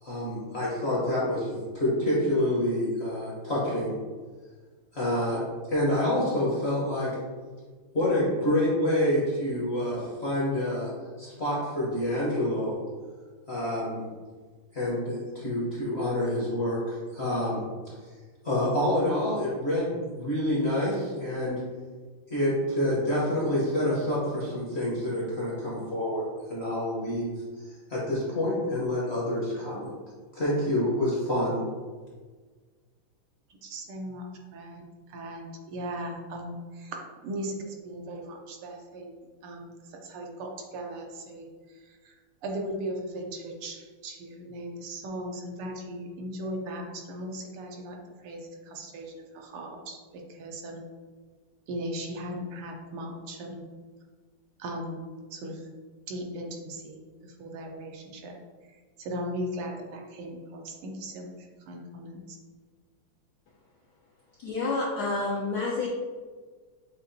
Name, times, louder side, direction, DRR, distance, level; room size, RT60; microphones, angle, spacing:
voice 1, 0.0-3.9 4.9-5.4 5.7-7.1 7.9-10.9 11.2-12.8 13.5-14.0 14.7-17.6 18.4-21.6 22.3-29.9 30.3-31.6, left 1 dB, 45° left, -7 dB, 0.8 m, -27 dB
voice 2, 33.6-34.2 34.5-34.8 35.1-42.1 42.4-50.8 51.7-53.6 54.6-55.0 55.3-55.7 56.1-58.3 58.7-62.4, right 1 dB, 90° right, 1 dB, 1.6 m, -38 dB
voice 3, 64.4-65.9, left 3 dB, 75° left, -4 dB, 0.9 m, -29 dB
6.7 x 2.4 x 2.6 m, 1.5 s
omnidirectional pair, 2.4 m